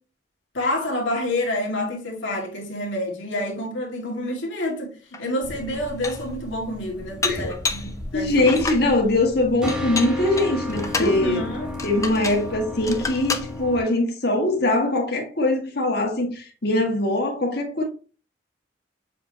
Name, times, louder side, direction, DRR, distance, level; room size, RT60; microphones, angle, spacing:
voice 1, 0.5-8.5 11.0-11.7, left 1 dB, 75° left, 1.9 m, -28 dB
Dishes pots and pans, 5.1-5.2 5.7-6.3 7.2-7.9 8.4-8.9 9.7-11.2 11.8-12.5 12.8-13.5, left 4 dB, 15° left, 0.6 m, -29 dB
sound 1, 5.4-13.8, left 2 dB, 5° right, 1.1 m, -34 dB
voice 2, 8.1-11.4 11.8-17.8, left 2 dB, 55° left, 1.7 m, -22 dB
7.1 x 5.0 x 2.8 m
head